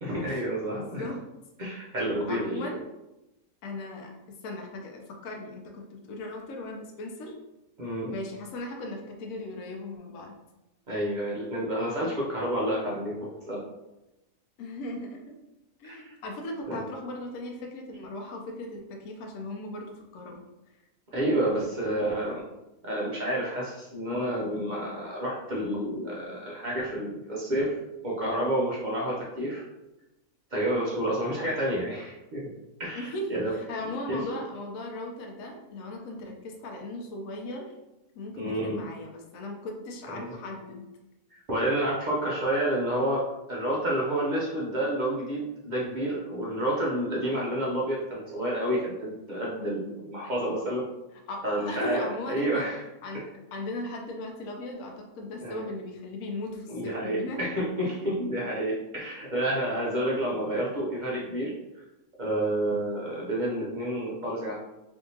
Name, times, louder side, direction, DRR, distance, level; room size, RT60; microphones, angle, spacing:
voice 1, 0.0-1.1 1.6-2.7 7.8-8.1 10.9-13.6 15.8-16.1 16.7-16.8 21.1-22.4 22.8-27.8 28.0-29.6 30.5-32.5 32.8-33.5 34.1-34.2 38.4-38.8 40.1-40.3 41.3-43.2 43.5-50.8 51.4-52.8 55.4-55.7 56.7-61.5 62.2-64.6, right 1 dB, 60° right, -5 dB, 0.5 m, -29 dB
voice 2, 0.7-1.2 2.3-2.8 3.6-4.1 4.4-7.4 8.1-10.3 14.6-15.3 15.8-20.4 32.9-37.7 38.2-40.8 51.3-52.7 53.0-53.2 53.5-57.5, left 1 dB, 70° left, 1 dB, 0.9 m, -37 dB
3.4 x 2.7 x 2.7 m, 0.97 s
omnidirectional pair, 1.5 m